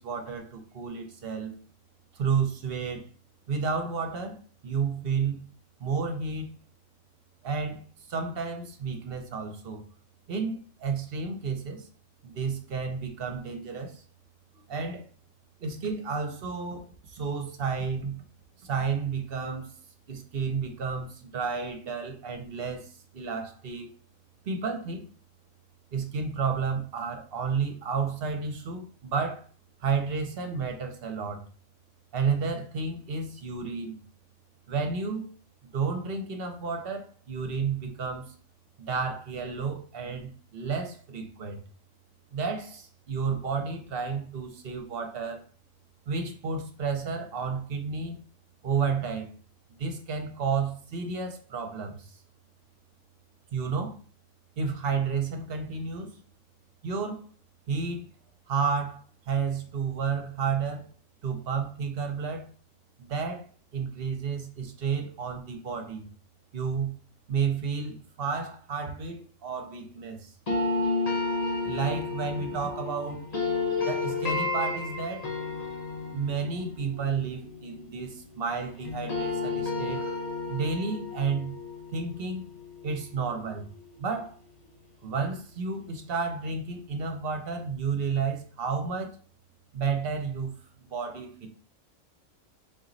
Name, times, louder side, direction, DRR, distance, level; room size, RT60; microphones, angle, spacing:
voice 1, 0.0-1.5 2.1-3.0 3.5-4.4 4.6-5.4 5.8-6.6 7.4-9.8 10.3-11.9 12.2-14.0 14.7-15.0 15.6-18.2 18.6-19.7 20.1-23.9 24.4-25.1 25.9-29.4 29.8-31.4 32.1-34.0 34.7-35.2 35.6-38.3 38.8-41.6 42.3-45.4 46.1-48.2 48.6-49.3 49.8-52.1 53.5-54.0 54.6-56.2 56.8-57.2 57.7-58.1 58.5-60.8 61.2-62.5 63.0-63.5 63.7-66.1 66.5-66.9 67.3-70.3 71.6-73.2 73.8-75.3 76.1-80.2 80.5-81.6 81.9-82.4 82.8-83.7 84.0-84.4 85.0-89.2 89.7-90.5 90.8-91.5, right 5 dB, 50° right, 0.9 m, -31 dB
sound 1, 70.5-78.5 78.8-83.8, left 3 dB, 35° left, 0.9 m, -32 dB
3.9 x 3.0 x 3.9 m
omnidirectional pair, 1.4 m